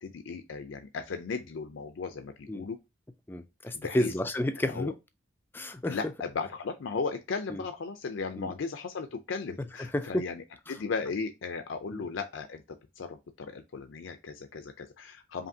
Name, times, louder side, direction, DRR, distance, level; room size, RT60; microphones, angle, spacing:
voice 1, 0.0-2.8 3.7-4.1 4.6-4.9 5.9-10.4 10.7-12.6 13.0-15.5, left 4 dB, 75° left, 0.4 m, -36 dB
voice 2, 3.3-4.9 5.5-6.0 7.5-7.6 8.4-8.5 9.6-10.3 11.9-12.0, left 1 dB, 10° left, 0.3 m, -31 dB
5.1 x 2.7 x 2.7 m
head